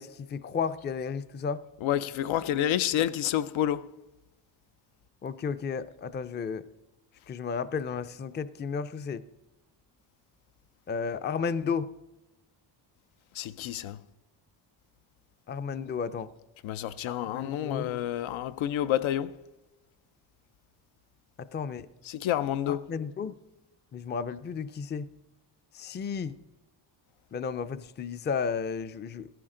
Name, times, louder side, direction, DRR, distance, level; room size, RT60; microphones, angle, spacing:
voice 1, 0.0-1.6 5.2-6.7 7.3-9.2 10.9-11.9 15.5-16.3 17.1-17.9 21.4-21.9 22.7-23.4 23.9-25.1 25.7-26.4 27.3-29.3, left 6 dB, 25° left, 0.4 m, -33 dB
voice 2, 1.8-3.9 13.3-14.0 16.6-19.3 22.0-22.8, left 11 dB, 85° left, 0.6 m, -29 dB
15.5 x 14.5 x 3.8 m
cardioid pair, 105°, 46 cm